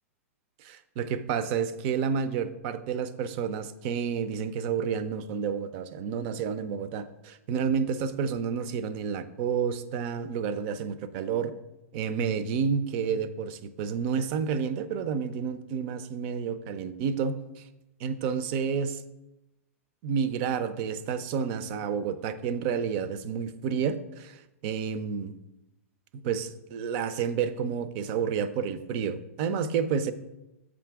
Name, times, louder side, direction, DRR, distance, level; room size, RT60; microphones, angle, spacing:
voice 1, 0.6-11.5 11.9-17.4 18.0-19.0 20.0-25.4 26.2-30.1, right 6 dB, 50° right, 13 dB, 0.5 m, -30 dB
7.2 x 5.0 x 3.5 m, 0.96 s
hypercardioid pair, 115°, 8 cm